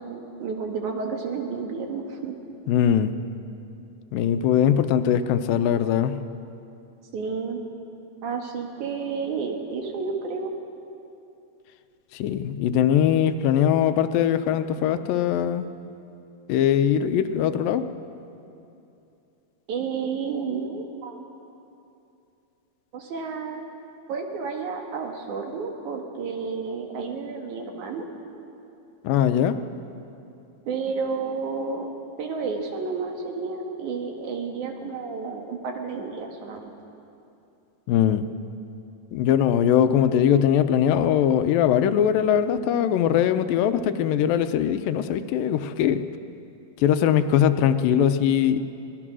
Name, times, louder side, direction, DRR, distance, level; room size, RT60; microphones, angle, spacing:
voice 1, 0.0-2.3 7.1-7.6 8.2-10.5 19.7-21.2 22.9-23.6 24.1-28.0 30.7-31.9 32.2-36.7, right 5 dB, 65° right, 3 dB, 3.0 m, -31 dB
voice 2, 2.7-3.1 4.1-6.2 12.1-15.7 16.5-17.9 29.0-29.6 37.9-38.2 39.1-46.0 46.8-48.6, left 9 dB, 90° left, 10 dB, 2.5 m, -21 dB
24.0 x 18.5 x 6.2 m, 2.7 s
omnidirectional pair, 3.9 m